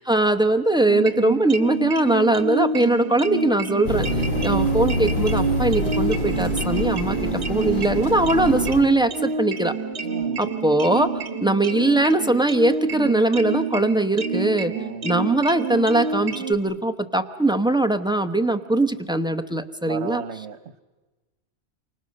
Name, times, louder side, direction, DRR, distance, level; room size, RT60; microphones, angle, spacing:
voice 1, 0.0-9.7 10.4-11.1 11.4-14.7 15.0-20.2, right 2 dB, 5° right, 7 dB, 0.9 m, -21 dB
sound 1, 0.9-16.5, right 4 dB, 65° right, 1.6 m, -28 dB
sound 2, 3.8-8.8, left 1 dB, 50° left, 1.8 m, -26 dB
voice 2, 4.3-4.6 10.0-10.5 14.7-15.2 19.9-20.8, right 6 dB, 85° right, 13 dB, 1.3 m, -37 dB
28.5 x 25.0 x 6.5 m, 1.2 s
omnidirectional pair, 1.1 m